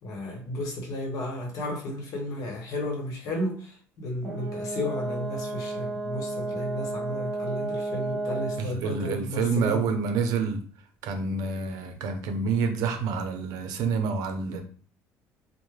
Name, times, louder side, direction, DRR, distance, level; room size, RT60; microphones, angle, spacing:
voice 1, 0.0-9.9, left 1 dB, 60° left, 1 dB, 0.9 m, -33 dB
Brass instrument, 4.2-8.7, right 2 dB, 10° right, 0.8 m, -32 dB
voice 2, 8.6-10.6 11.0-14.6, right 5 dB, 70° right, 7 dB, 0.5 m, -28 dB
2.3 x 2.0 x 3.1 m, 0.42 s
cardioid pair, 120°, 7 cm